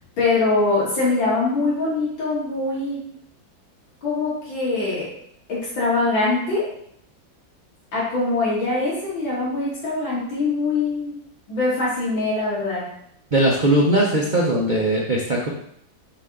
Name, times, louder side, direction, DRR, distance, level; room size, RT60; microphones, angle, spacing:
voice 1, 0.2-3.0 4.0-5.1 5.5-6.6 7.9-11.2 11.5-12.9, left 3 dB, 75° left, -9 dB, 3.2 m, -23 dB
voice 2, 13.3-15.5, right 1 dB, 35° right, -4 dB, 0.8 m, -19 dB
6.2 x 4.3 x 3.8 m, 0.68 s
omnidirectional pair, 2.1 m